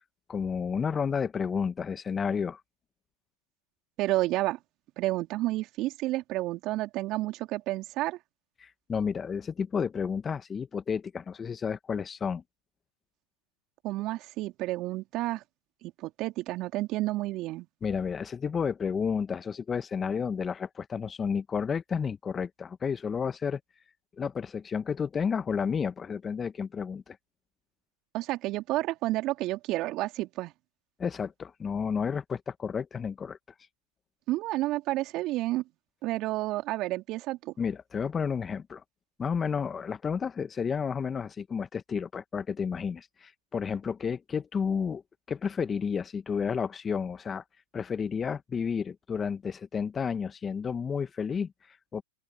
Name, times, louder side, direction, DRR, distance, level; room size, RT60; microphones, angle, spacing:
voice 1, 0.3-2.6 8.6-12.4 17.8-23.6 24.2-27.2 31.0-33.4 37.6-38.8 39.2-45.0 45.3-47.4 47.7-52.0, left 6 dB, 20° left, 1.2 m, -31 dB
voice 2, 4.0-4.6 5.0-8.2 13.8-15.4 15.8-17.7 28.1-30.5 34.3-35.6 36.0-37.5, right 17 dB, 40° right, 3.0 m, -30 dB
open air
hypercardioid pair, 105°, 0 cm